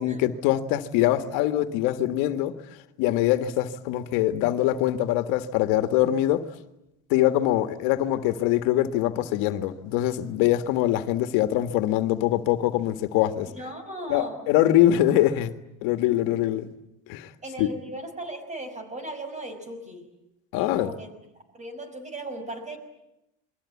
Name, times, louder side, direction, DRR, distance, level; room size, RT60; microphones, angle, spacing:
voice 1, 0.0-2.5 3.0-6.4 7.1-13.5 14.1-15.5 15.8-16.7 17.1-17.3 17.6-17.7 20.5-20.9, left 13 dB, 85° left, 1.8 m, -23 dB
voice 2, 13.5-14.5 17.4-20.1 20.5-21.1 21.5-22.8, right 1 dB, 20° right, 5.7 m, -37 dB
29.0 x 22.5 x 8.5 m
cardioid pair, 140°, 33 cm